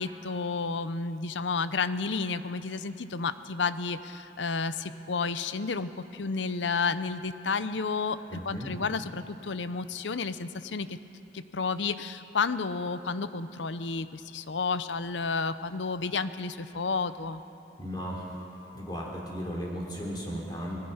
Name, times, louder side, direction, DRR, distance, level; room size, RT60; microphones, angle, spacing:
voice 1, 0.0-11.0 11.3-17.4, left 4 dB, 85° left, 13 dB, 0.7 m, -31 dB
voice 2, 8.3-8.8 17.8-18.4 18.7-20.8, equal, 25° left, -3 dB, 3.5 m, -36 dB
24.5 x 20.0 x 5.7 m, 2.9 s
head